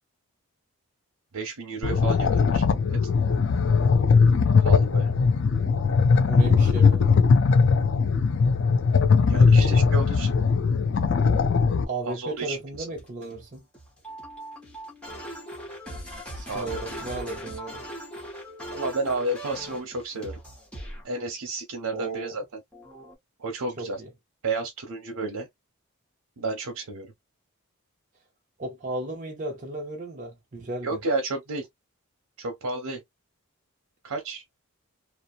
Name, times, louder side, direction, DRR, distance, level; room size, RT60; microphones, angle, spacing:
voice 1, 1.3-2.6 2.9-3.1 4.6-5.1 9.3-10.3 12.0-12.9 16.5-17.0 18.7-20.4 21.0-22.4 23.4-24.0 24.4-25.5 26.4-27.1 30.8-31.7 32.4-33.0 34.0-34.4, right 3 dB, 85° right, 0.7 m, -31 dB
sound 1, 1.8-11.8, left 5 dB, 55° left, 0.4 m, -20 dB
voice 2, 6.2-7.1 9.4-9.8 11.9-13.6 16.3-17.8 21.9-22.4 23.8-24.1 28.6-31.0, right 2 dB, 35° right, 0.6 m, -35 dB
sound 2, 12.3-21.0 22.7-23.1, equal, 5° left, 0.9 m, -40 dB
2.8 x 2.0 x 2.4 m
head